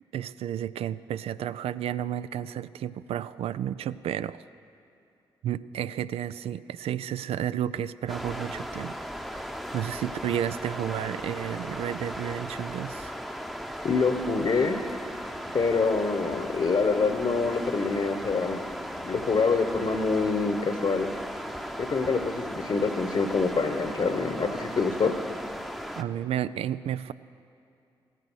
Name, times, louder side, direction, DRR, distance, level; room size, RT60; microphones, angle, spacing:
voice 1, 0.1-4.4 5.4-9.0 9.3-9.4 9.7-13.1 26.0-27.1, right 10 dB, 70° right, 16 dB, 0.3 m, -32 dB
sound 1, 8.1-26.0, equal, ahead, 0.8 m, -37 dB
voice 2, 13.8-14.8 15.5-18.6 19.0-21.1 21.8-25.1, left 4 dB, 50° left, 6 dB, 1.0 m, -26 dB
15.0 x 9.2 x 6.3 m, 2.6 s
supercardioid pair, 45°, 10 cm